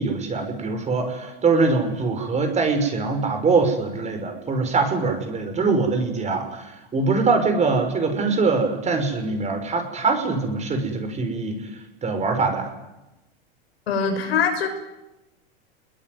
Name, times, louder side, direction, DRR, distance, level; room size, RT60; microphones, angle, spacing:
voice 1, 0.0-6.6 6.9-11.6 12.0-12.7, right 4 dB, 20° right, 6 dB, 5.9 m, -23 dB
voice 2, 13.9-14.7, left 6 dB, 85° left, 4 dB, 6.6 m, -22 dB
29.0 x 21.5 x 9.6 m, 0.99 s
hypercardioid pair, 115°, 30 cm